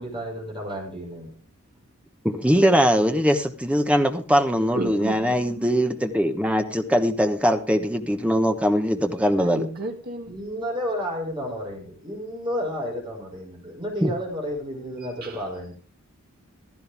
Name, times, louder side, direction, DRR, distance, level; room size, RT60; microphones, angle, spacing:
voice 1, 0.0-1.4 10.3-15.7, equal, 20° right, 0 dB, 5.3 m, -31 dB
voice 2, 2.2-9.7 14.0-14.1, equal, 5° right, 6 dB, 1.2 m, -21 dB
voice 3, 4.7-5.7 9.4-10.3 15.0-15.4, equal, 45° right, 1 dB, 2.5 m, -32 dB
15.5 x 13.0 x 3.6 m, 0.36 s
head